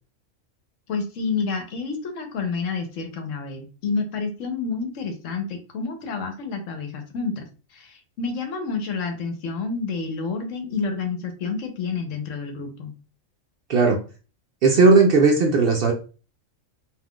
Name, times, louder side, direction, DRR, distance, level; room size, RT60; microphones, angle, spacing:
voice 1, 0.9-7.5 7.7-12.9, left 4 dB, 75° left, 5 dB, 1.1 m, -29 dB
voice 2, 14.6-15.9, right 4 dB, 60° right, 2 dB, 0.6 m, -16 dB
2.6 x 2.3 x 3.5 m, 0.35 s
omnidirectional pair, 1.3 m